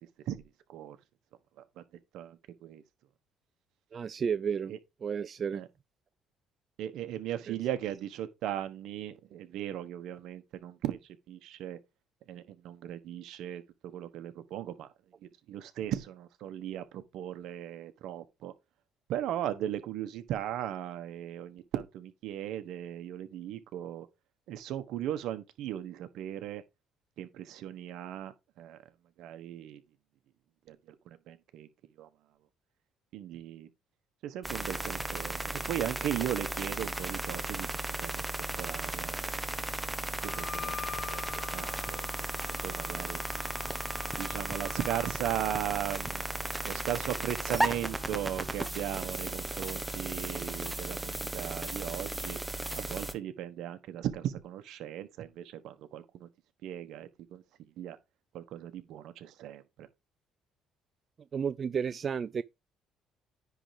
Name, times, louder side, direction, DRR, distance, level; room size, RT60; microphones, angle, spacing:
voice 1, 2.1-2.8 4.7-4.8 5.5-5.7 6.8-11.8 12.3-14.9 15.5-18.5 19.1-24.1 24.5-26.6 27.2-28.8 29.2-29.8 30.7-31.7 32.0-32.1 33.1-33.7 34.2-38.1 38.6-39.3 40.3-40.8 41.1-41.2 41.5-42.1 42.6-43.2 43.6-43.8 44.2-46.2 46.6-52.4 52.7-56.3 56.6-57.4 57.8-58.0 58.3-59.9, right 11 dB, 75° right, 1.3 m, -37 dB
voice 2, 3.9-4.7 5.0-5.6 7.5-7.6 61.3-62.4, right 7 dB, 40° right, 0.4 m, -32 dB
sound 1, 34.4-53.1, right 1 dB, 5° right, 1.0 m, -35 dB
Wind instrument woodwind instrument, 40.2-45.2, left 9 dB, 35° left, 0.8 m, -44 dB
10.0 x 3.5 x 5.1 m
cardioid pair, 100°, 0 cm